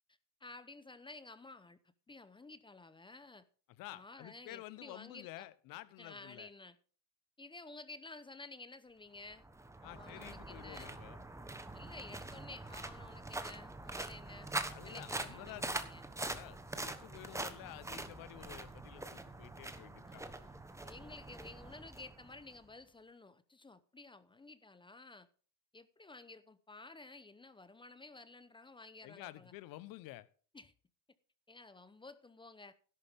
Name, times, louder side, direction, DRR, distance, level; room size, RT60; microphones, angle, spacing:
voice 1, 0.4-1.8 2.1-3.4 3.9-5.5 6.0-6.8 7.4-9.4 9.8-11.0 11.7-14.5 14.8-16.0 20.1-25.3 25.7-29.5 30.5-30.7 31.5-32.7, left 3 dB, 15° left, 0.8 m, -53 dB
voice 2, 3.8-6.5 9.8-11.2 14.7-15.8 16.2-20.2 29.0-30.3, left 17 dB, 60° left, 1.0 m, -51 dB
sound 1, 9.3-22.6, right 2 dB, 10° right, 1.1 m, -44 dB
12.5 x 11.5 x 3.6 m
supercardioid pair, 100°, 38 cm